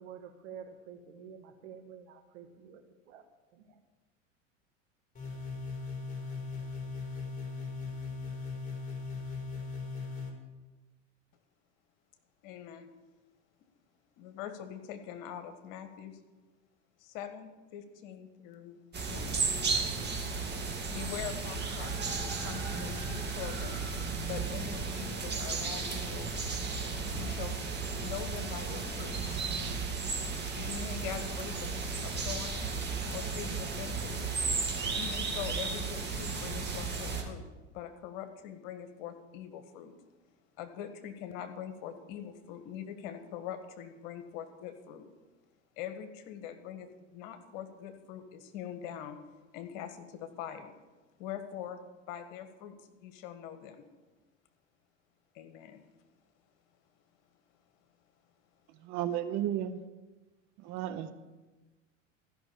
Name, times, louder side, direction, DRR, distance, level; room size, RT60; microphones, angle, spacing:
voice 1, 0.0-3.2 3.5-3.6, right 7 dB, 65° right, 6 dB, 1.6 m, -49 dB
sound 1, 5.1-10.3, left 4 dB, 20° left, 4.1 m, -39 dB
voice 2, 12.4-12.9 14.2-16.2 17.0-18.8 19.1-19.5 20.9-23.8 24.2-26.6 27.1-27.7 28.0-29.3 30.5-32.6 33.1-34.2 34.9-37.4 37.7-39.9 40.6-45.0 45.8-49.2 49.5-50.7 51.2-51.8 52.1-53.8 55.3-55.8 59.1-59.2, left 9 dB, 55° left, 9 dB, 1.5 m, -43 dB
sound 2, 18.9-37.2, right 4 dB, 25° right, 2.2 m, -34 dB
voice 3, 58.8-59.8 60.6-61.1, right 11 dB, 45° right, 11 dB, 0.9 m, -33 dB
14.5 x 6.0 x 7.0 m, 1.2 s
hypercardioid pair, 85°, 38 cm